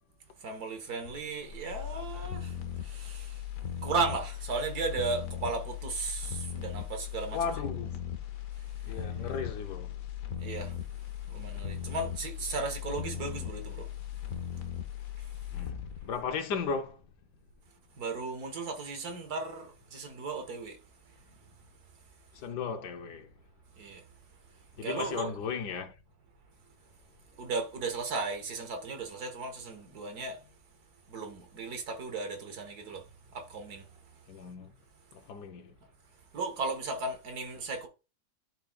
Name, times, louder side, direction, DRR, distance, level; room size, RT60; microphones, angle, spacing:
voice 1, 0.4-2.5 2.8-3.4 3.8-7.5 10.4-10.7 11.3-13.9 18.0-20.8 23.8-24.0 24.8-25.3 27.4-30.4 31.1-33.0 33.3-33.8 36.3-37.9, right 3 dB, 65° right, 1.8 m, -35 dB
sound 1, 1.0-17.1 17.5-17.6, left 10 dB, 65° left, 1.1 m, -38 dB
voice 2, 7.3-8.0 8.8-10.0 11.4-11.7 15.5-15.8 16.0-17.0 22.3-23.3 24.8-25.9 34.3-34.7 35.1-35.7, left 6 dB, 80° left, 1.4 m, -36 dB
11.0 x 4.5 x 2.3 m
omnidirectional pair, 1.8 m